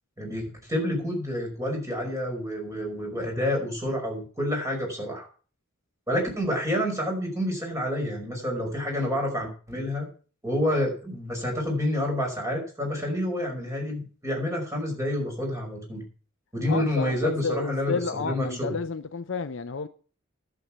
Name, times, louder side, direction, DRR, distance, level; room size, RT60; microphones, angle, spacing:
voice 1, 0.2-5.3 6.1-10.1 10.4-16.0 16.5-18.7, left 1 dB, 15° right, 5.4 m, -28 dB
voice 2, 16.7-19.9, left 4 dB, 60° left, 0.6 m, -31 dB
11.0 x 8.0 x 7.4 m
head